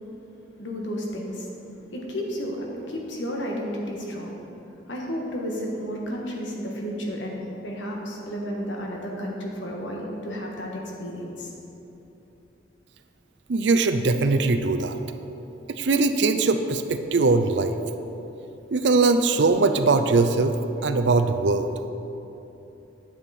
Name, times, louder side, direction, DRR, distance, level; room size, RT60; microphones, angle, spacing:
voice 1, 0.6-1.6 1.9-11.5, equal, 75° left, -1 dB, 1.5 m, -32 dB
voice 2, 13.5-15.0 15.7-17.8 18.7-20.6 20.8-21.7, right 3 dB, 65° right, 8 dB, 0.5 m, -21 dB
9.8 x 7.3 x 4.2 m, 3.0 s
head